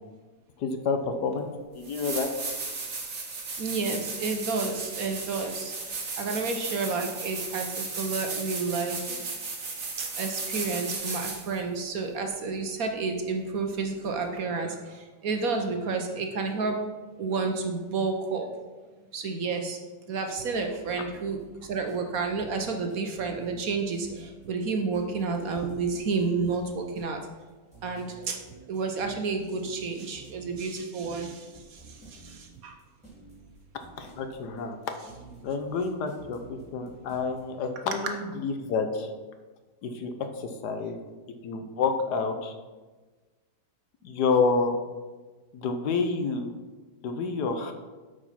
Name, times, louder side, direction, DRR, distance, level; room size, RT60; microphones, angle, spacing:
voice 1, 0.6-2.3 34.0-34.8 35.4-39.1 39.8-41.0 41.4-42.5 44.0-44.8 45.5-46.5 47.0-47.7, left 4 dB, 70° left, 6 dB, 1.4 m, -29 dB
sound 1, 1.3-1.4 1.8-11.6 14.4-14.5, right 4 dB, 45° right, 1.5 m, -35 dB
voice 2, 3.6-5.7 6.2-9.2 10.0-14.9 15.2-16.8 17.2-18.5 19.1-19.8 20.1-21.4 21.7-27.2 27.8-28.4 28.7-31.5 31.7-31.8 32.1-32.7, right 4 dB, 60° right, 4 dB, 1.2 m, -30 dB
sound 2, 20.3-37.4, right 4 dB, 5° right, 2.2 m, -50 dB
8.3 x 5.1 x 5.7 m, 1.3 s
omnidirectional pair, 1.9 m